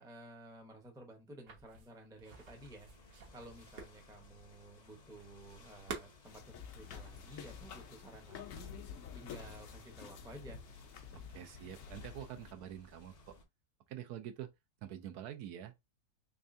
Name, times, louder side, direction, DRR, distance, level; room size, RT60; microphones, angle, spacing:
voice 1, 0.0-10.6, right 1 dB, 5° right, 0.5 m, -54 dB
sound 1, 1.5-6.7, right 5 dB, 65° right, 1.3 m, -50 dB
sound 2, 2.2-13.4, left 2 dB, 40° left, 0.7 m, -60 dB
sound 3, 6.2-12.5, left 7 dB, 65° left, 0.9 m, -50 dB
voice 2, 11.1-13.3 13.9-14.5 14.8-15.7, right 11 dB, 80° right, 1.1 m, -46 dB
3.6 x 3.2 x 2.6 m
omnidirectional pair, 1.7 m